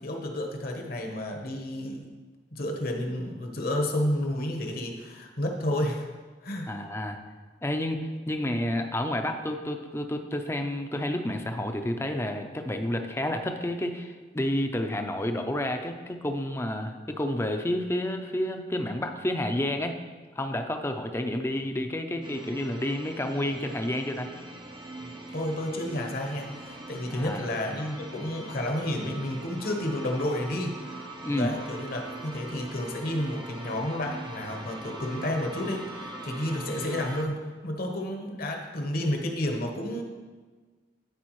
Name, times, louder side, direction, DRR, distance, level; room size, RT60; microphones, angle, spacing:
voice 1, 0.0-2.1 2.5-6.1 6.4-6.7 25.0-40.0, left 1 dB, 55° left, 2 dB, 1.1 m, -31 dB
voice 2, 6.7-7.2 7.6-20.0 20.4-24.3 27.1-27.5 31.2-31.5, left 1 dB, 15° left, 5 dB, 0.5 m, -30 dB
sound 1, 22.2-37.2, right 2 dB, 25° right, 0.7 m, -42 dB
13.0 x 4.6 x 3.1 m, 1.4 s
head